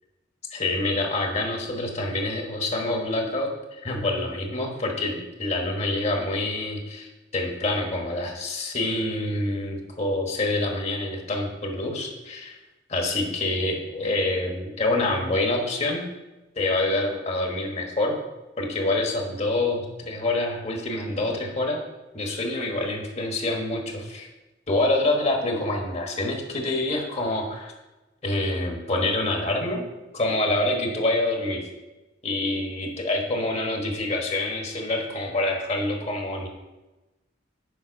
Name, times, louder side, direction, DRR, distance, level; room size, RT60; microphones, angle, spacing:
voice 1, 0.5-12.6 12.9-16.0 16.5-18.2 18.6-21.8 22.1-24.3 24.7-27.7 28.2-29.8 30.1-31.6 32.2-36.5, left 2 dB, 35° left, 1 dB, 1.4 m, -26 dB
7.3 x 5.3 x 5.2 m, 1.1 s
head